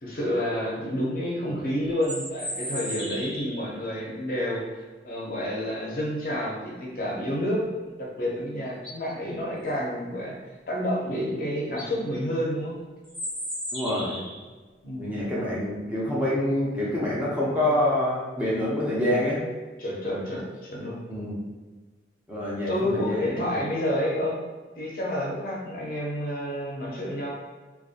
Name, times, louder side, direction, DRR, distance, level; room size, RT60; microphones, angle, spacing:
voice 1, 0.0-7.7 8.0-10.3 10.7-12.8 14.8-15.1 19.8-21.0 22.7-24.4 24.8-27.3, equal, 50° left, -3 dB, 0.6 m, -29 dB
sound 1, 1.8-3.7 8.2-8.3 8.7-9.1 11.1-11.2 11.6-11.9 13.0-14.4, equal, 30° right, 0.9 m, -35 dB
voice 2, 13.7-14.2 15.0-19.4 21.1-21.4 22.3-23.6, left 1 dB, 10° right, -7 dB, 0.5 m, -26 dB
2.6 x 2.2 x 2.4 m, 1.3 s
head